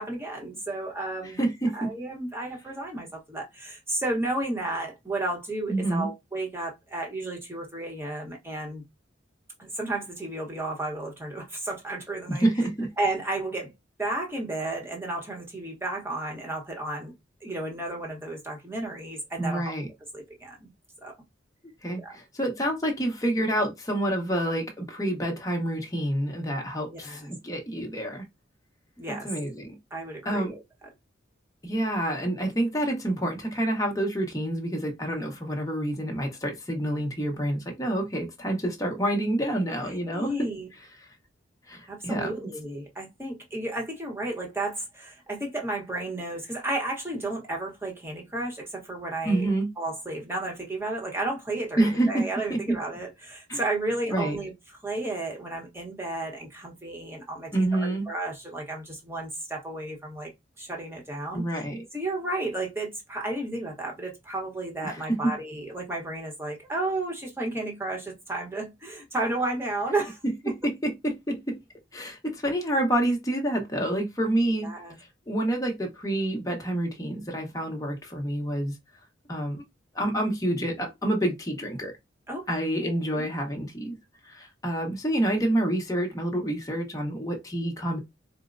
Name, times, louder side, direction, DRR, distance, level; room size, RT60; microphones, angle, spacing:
voice 1, 0.0-1.4 1.7-8.8 9.6-12.5 13.0-13.7 14.0-17.1 17.4-19.7 20.1-20.7 21.0-21.1 22.0-22.1 26.9-27.3 29.0-29.3 29.9-30.6 39.9-40.7 41.9-49.5 49.8-54.5 54.8-60.3 60.6-61.6 61.9-70.2 74.6-75.0 82.3-82.5 82.8-83.3, right 2 dB, 15° right, 1.0 m, -33 dB
voice 2, 1.4-1.9 5.7-6.1 12.3-12.9 19.4-19.9 21.8-28.2 29.1-29.7 30.2-30.5 31.6-40.5 41.7-42.5 49.2-49.7 51.8-52.2 52.5-52.6 53.5-53.6 54.1-54.4 57.5-58.1 61.3-61.8 64.8-65.0 70.6-71.6 71.9-74.7 75.3-78.7 79.3-79.6 79.9-81.9 82.5-84.0 84.3-88.0, right 1 dB, 20° left, 0.9 m, -28 dB
4.2 x 2.1 x 2.5 m
head